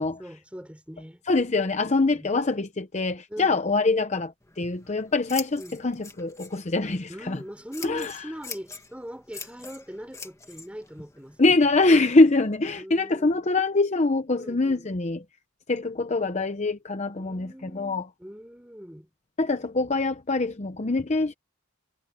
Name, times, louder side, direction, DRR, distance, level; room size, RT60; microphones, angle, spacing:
voice 1, 0.2-1.2 2.1-2.3 3.3-3.5 5.6-5.8 7.1-11.4 12.8-13.5 14.4-14.9 17.2-19.1, equal, 5° right, 5.7 m, -41 dB
voice 2, 1.3-7.4 7.8-8.2 11.4-15.2 15.7-18.1 19.4-21.3, left 3 dB, 35° left, 0.7 m, -24 dB
Scissors, 4.4-12.5, left 4 dB, 15° left, 1.8 m, -44 dB
head